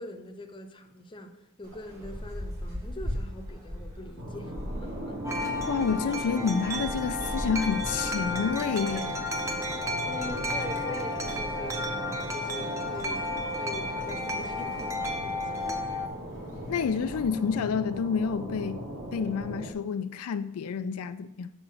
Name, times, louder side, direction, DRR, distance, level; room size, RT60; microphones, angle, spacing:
voice 1, 0.0-4.5 4.8-5.2 10.0-13.2 13.6-15.7, left 1 dB, 20° left, 0.7 m, -42 dB
sound 1, 1.6-17.2, equal, 30° right, 2.0 m, -42 dB
sound 2, 4.2-19.7, right 1 dB, 50° right, 1.7 m, -38 dB
Wind chime, 5.2-16.1, left 1 dB, 15° right, 0.7 m, -33 dB
voice 2, 5.7-9.2 16.7-18.8 19.1-21.5, left 6 dB, 80° left, 0.4 m, -29 dB
7.5 x 5.0 x 6.2 m
head